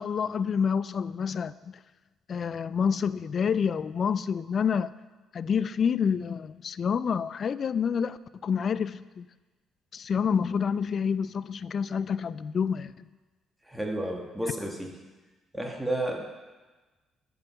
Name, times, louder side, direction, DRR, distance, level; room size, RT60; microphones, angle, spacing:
voice 1, 0.0-1.8 2.3-4.9 5.3-9.3 9.9-13.0, left 6 dB, 50° left, 17 dB, 0.3 m, -28 dB
voice 2, 13.7-14.9 15.5-16.2, right 1 dB, 5° right, 0 dB, 1.6 m, -31 dB
10.0 x 5.4 x 5.6 m, 1.2 s
cardioid pair, 85°, 0 cm